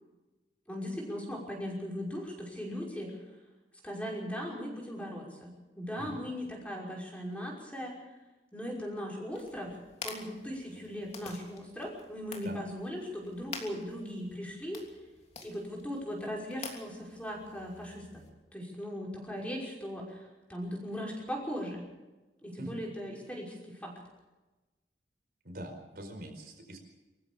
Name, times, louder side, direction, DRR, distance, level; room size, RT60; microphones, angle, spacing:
voice 1, 0.7-3.2 3.8-5.5 5.8-7.9 8.5-9.8 10.0-14.8 15.4-18.2 18.5-21.8 22.4-23.9, equal, 5° left, -2 dB, 5.8 m, -38 dB
sound 1, 9.3-18.3, left 4 dB, 35° left, 3.1 m, -49 dB
voice 2, 25.4-26.8, right 1 dB, 55° right, 4 dB, 4.7 m, -43 dB
24.5 x 15.0 x 7.2 m, 1.1 s
head